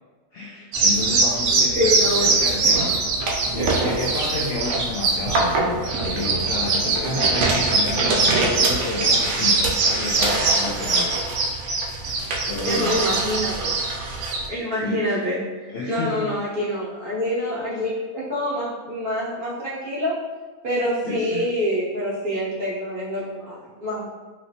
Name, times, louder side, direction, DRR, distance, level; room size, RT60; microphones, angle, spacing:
voice 1, 0.3-1.9 2.3-3.0 3.5-11.1 12.5-13.0 14.8-15.2 15.7-16.3 21.0-21.4, left 3 dB, 75° left, -4 dB, 0.5 m, -30 dB
sound 1, 0.7-14.5, right 3 dB, 70° right, 0.9 m, -22 dB
voice 2, 1.7-2.3 12.6-13.8 14.5-20.2 20.6-24.1, equal, 45° right, -8 dB, 0.8 m, -26 dB
3.0 x 2.8 x 2.7 m, 1.3 s
omnidirectional pair, 1.5 m